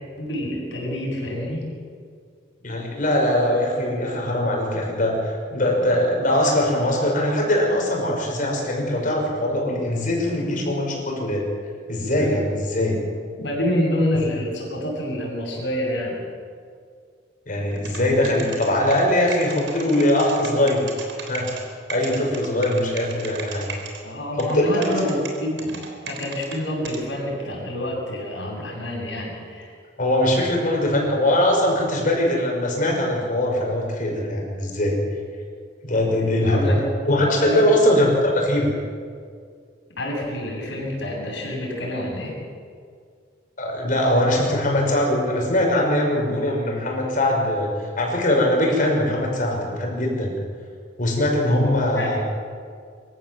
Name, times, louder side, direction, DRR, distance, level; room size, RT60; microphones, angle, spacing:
voice 1, 0.2-1.6 12.2-12.3 13.4-16.2 24.0-29.7 36.4-36.8 37.2-37.6 40.0-42.3 51.9-52.2, left 1 dB, 80° left, -2 dB, 7.7 m, -27 dB
voice 2, 2.6-11.4 11.9-13.0 17.5-20.9 21.3-21.5 21.9-23.7 24.4-25.1 30.0-35.0 35.8-36.8 37.0-38.7 43.6-50.3 51.0-52.2, left 1 dB, 50° left, 0 dB, 5.8 m, -21 dB
sound 1, 17.7-21.6 21.9-24.0 24.4-24.5 24.8-26.6 26.8-27.0, right 6 dB, 90° right, 3.9 m, -35 dB
24.5 x 15.0 x 7.7 m, 2.1 s
head